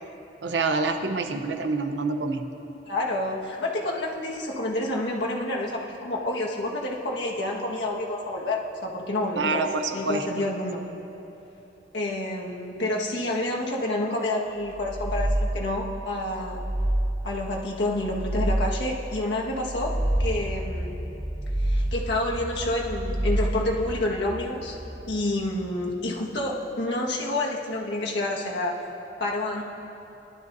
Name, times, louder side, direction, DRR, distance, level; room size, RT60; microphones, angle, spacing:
voice 1, 0.4-2.4 9.4-10.4, right 3 dB, 80° right, 6 dB, 0.8 m, -27 dB
voice 2, 2.9-9.6 9.9-10.8 11.9-16.6 17.2-21.0 21.6-24.7 25.1-28.7 29.2-29.6, left 1 dB, 70° left, -3 dB, 1.6 m, -28 dB
sound 1, 14.7-15.8 16.3-17.4 17.9-19.0 19.5-20.6 21.1-22.2 22.7-23.8, right 1 dB, 35° right, 2.6 m, -27 dB
sound 2, 20.0-26.5, equal, 20° right, 2.9 m, -38 dB
20.0 x 12.0 x 2.7 m, 3.0 s
head